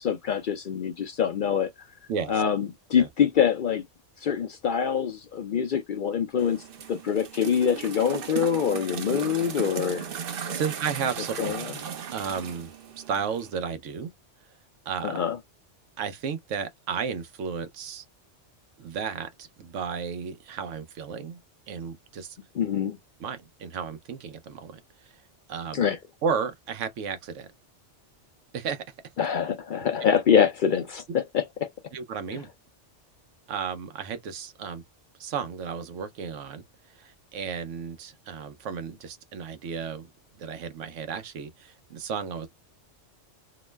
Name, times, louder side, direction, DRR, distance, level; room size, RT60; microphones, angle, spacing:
voice 1, 0.0-1.7 2.3-3.8 4.2-10.1 10.5-10.6 11.4-11.7 15.0-15.4 22.6-23.0 25.7-26.0 29.2-31.7, left 7 dB, 60° left, 0.5 m, -25 dB
voice 2, 2.1-2.4 2.9-3.1 10.5-11.5 12.1-12.7 13.1-14.1 14.9-15.2 16.0-18.0 18.8-21.4 21.7-22.4 23.2-25.2 25.5-25.9 26.2-27.5 28.5-28.8 31.9-32.5 33.5-34.8 35.2-40.1 40.4-42.5, right 6 dB, 90° right, 1.0 m, -33 dB
sound 1, 6.4-13.5, right 8 dB, 55° right, 0.7 m, -37 dB
2.9 x 2.0 x 3.2 m
omnidirectional pair, 1.2 m